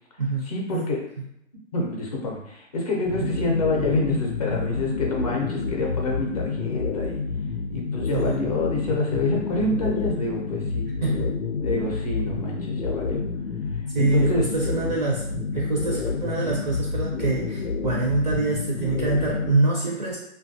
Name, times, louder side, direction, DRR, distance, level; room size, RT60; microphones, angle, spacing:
voice 1, 0.5-1.0 1.7-7.2 7.7-10.9 11.6-13.2 14.0-14.4, left 2 dB, 30° left, -1 dB, 0.6 m, -27 dB
sound 1, 3.0-19.5, left 4 dB, 90° left, 0.6 m, -29 dB
voice 2, 11.0-11.3 13.9-20.2, right 3 dB, 35° right, -4 dB, 0.5 m, -25 dB
3.1 x 2.3 x 2.6 m, 0.78 s
hypercardioid pair, 165°, 38 cm